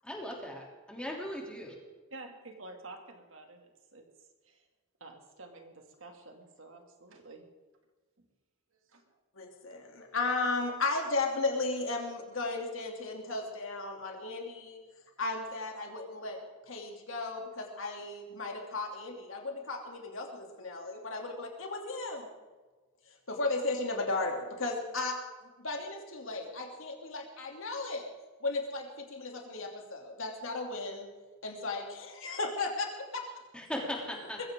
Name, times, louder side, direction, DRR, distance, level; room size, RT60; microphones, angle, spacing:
voice 1, 0.0-1.8 33.5-34.4, left 1 dB, 5° left, -1 dB, 3.3 m, -38 dB
voice 2, 2.1-4.0 4.4-4.7 5.0-7.4 8.2-8.3 8.7-9.2, right 2 dB, 65° right, 3 dB, 2.7 m, -50 dB
voice 3, 9.3-14.8 15.2-16.4 16.7-22.3 23.1-25.1 25.6-28.0 28.4-31.1 31.4-33.2, left 3 dB, 65° left, 1 dB, 3.1 m, -35 dB
21.0 x 15.5 x 3.9 m, 1.3 s
head